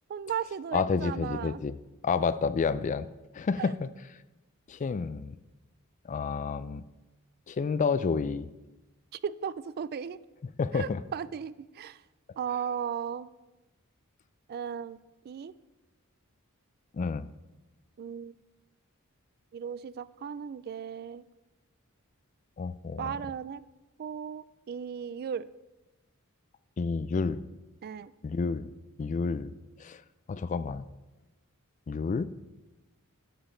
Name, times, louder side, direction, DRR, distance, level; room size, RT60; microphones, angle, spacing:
voice 1, 0.1-1.6 3.6-3.7 9.2-10.2 10.7-12.0 12.4-13.3 14.5-15.0 15.2-15.5 18.0-18.3 19.5-21.2 23.0-23.6 24.0-25.5 27.8-28.1, right 7 dB, 45° right, 18 dB, 0.3 m, -36 dB
voice 2, 0.7-1.8 2.0-3.1 3.3-3.9 4.7-5.4 6.1-6.8 7.5-8.5 10.6-11.0 16.9-17.3 22.6-23.1 26.8-27.5 28.2-28.7 29.0-29.5 29.8-30.0 30.3-30.8 31.9-32.3, left 5 dB, 35° left, 15 dB, 0.3 m, -29 dB
11.0 x 7.1 x 3.8 m, 1.1 s
head